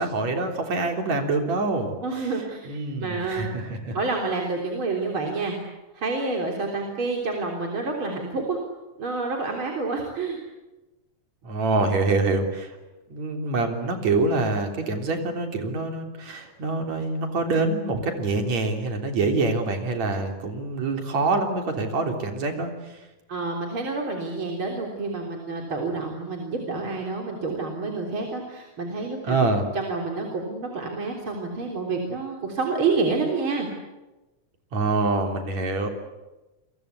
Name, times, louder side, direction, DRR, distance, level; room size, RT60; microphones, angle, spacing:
voice 1, 0.0-2.3 2.6-4.0 11.4-12.7 13.1-23.0 29.2-29.7 34.7-35.9, right 3 dB, 65° right, 4 dB, 4.7 m, -25 dB
voice 2, 2.0-3.5 3.9-5.6 5.9-8.6 9.0-10.4 23.3-29.4 29.7-33.7, right 3 dB, 40° right, 1 dB, 4.1 m, -28 dB
29.5 x 23.0 x 8.3 m, 1.1 s
omnidirectional pair, 3.5 m